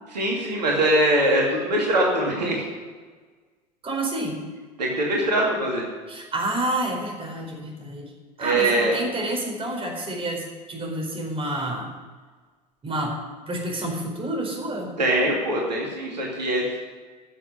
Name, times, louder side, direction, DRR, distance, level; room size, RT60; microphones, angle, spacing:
voice 1, 0.1-2.6 4.8-5.8 8.4-9.0 15.0-16.8, right 1 dB, 80° right, -2 dB, 2.5 m, -22 dB
voice 2, 3.8-4.4 6.1-8.1 8.4-10.4 10.7-11.9 12.8-13.1 13.5-14.9, right 1 dB, 25° right, 0 dB, 4.6 m, -29 dB
11.5 x 7.5 x 9.9 m, 1.4 s
figure-of-eight pair, 75°, 21 cm